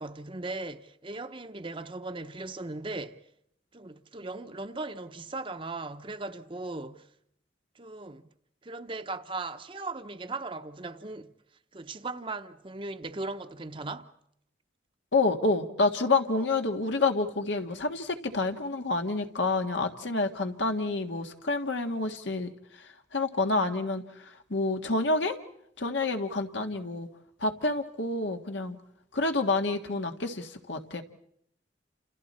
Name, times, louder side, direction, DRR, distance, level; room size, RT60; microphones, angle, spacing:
voice 1, 0.0-3.2 3.7-7.1 7.7-8.2 8.6-11.3 11.7-14.1 16.4-16.5, right 3 dB, 30° right, 0.8 m, -38 dB
voice 2, 15.1-22.5 22.8-25.3 25.8-27.1 27.4-28.8 29.1-31.0, left 3 dB, 85° left, 1.7 m, -28 dB
29.0 x 28.0 x 4.3 m
head